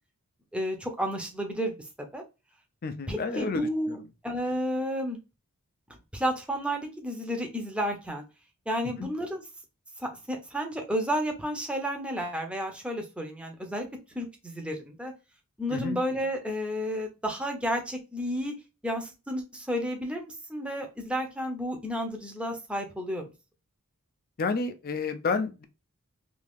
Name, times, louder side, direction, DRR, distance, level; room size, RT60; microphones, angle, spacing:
voice 1, 0.5-1.7 2.1-2.2 3.1-4.0 4.2-5.2 6.1-8.2 8.7-9.4 10.0-15.1 15.6-18.6 18.8-23.3, equal, 5° right, 0.6 m, -31 dB
voice 2, 2.8-4.0 9.0-9.1 15.7-16.0 24.4-25.6, left 4 dB, 40° left, 0.4 m, -30 dB
2.8 x 2.6 x 3.4 m
head